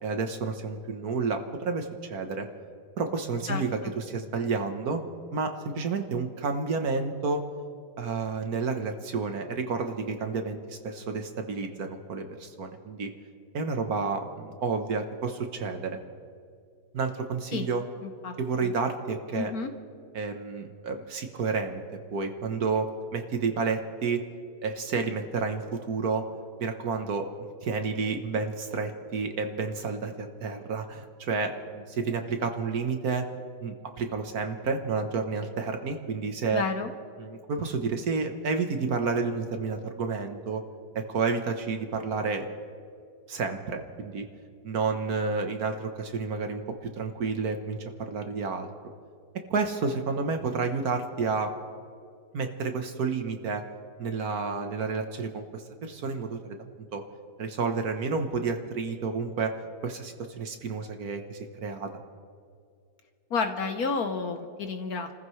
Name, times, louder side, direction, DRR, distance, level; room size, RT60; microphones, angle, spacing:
voice 1, 0.0-2.5 3.0-3.7 4.0-5.0 5.3-7.4 8.0-13.1 13.5-16.0 16.9-17.8 18.4-19.5 20.1-21.8 22.1-24.2 24.6-26.2 26.6-33.3 33.6-36.6 37.2-40.6 40.9-42.5 43.3-44.2 44.6-48.7 49.5-51.5 52.3-53.6 54.0-56.6 56.9-57.0 57.4-59.5 59.8-61.9, right 4 dB, 55° right, 6 dB, 1.4 m, -30 dB
voice 2, 3.5-3.9 17.5-17.7 18.0-18.4 18.6-18.7 19.3-19.7 36.5-36.9 63.3-65.1, left 4 dB, 60° left, 7 dB, 1.2 m, -31 dB
30.0 x 15.0 x 3.2 m, 2.3 s
omnidirectional pair, 2.0 m